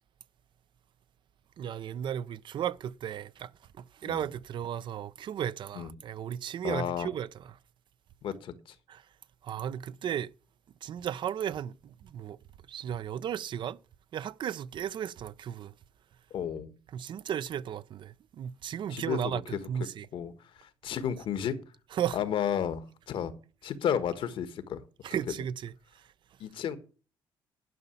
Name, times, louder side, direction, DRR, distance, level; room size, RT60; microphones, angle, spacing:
voice 1, 1.6-3.5 3.8-7.3 8.9-9.0 9.4-10.3 10.8-12.4 12.7-13.8 14.1-15.7 16.9-20.1 21.9-22.2 25.0-26.0, right 9 dB, 60° right, 0.6 m, -35 dB
voice 2, 6.6-7.1 8.2-8.7 16.3-16.7 18.9-19.6 20.1-21.5 22.1-23.3 23.6-24.8 26.4-26.8, left 9 dB, 70° left, 1.4 m, -32 dB
11.0 x 5.6 x 8.5 m
cardioid pair, 90°, 9 cm